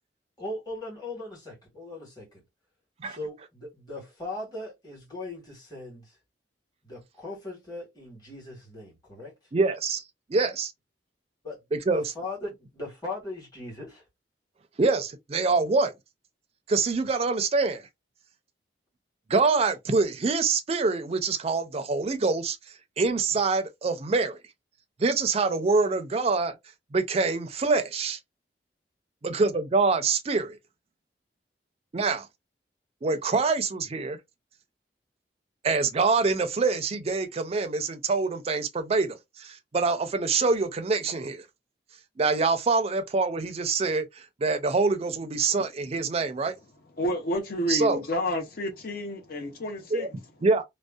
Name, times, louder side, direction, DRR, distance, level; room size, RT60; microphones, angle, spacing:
voice 1, 0.4-2.4 3.0-6.1 6.8-9.3 11.4-11.6 11.9-14.0, left 2 dB, 25° left, 1.3 m, -39 dB
voice 2, 9.5-10.0 10.3-10.7 11.7-12.1 14.8-15.9 16.7-17.8 19.3-22.6 23.0-24.4 25.0-26.5 26.9-28.2 29.2-30.6 31.9-32.3 33.0-34.2 35.6-41.4 42.2-44.1 44.4-46.5 47.7-48.0 49.9-50.6, right 4 dB, 35° right, 0.4 m, -25 dB
voice 3, 47.0-50.1, left 1 dB, 55° left, 0.6 m, -30 dB
2.6 x 2.0 x 2.3 m
head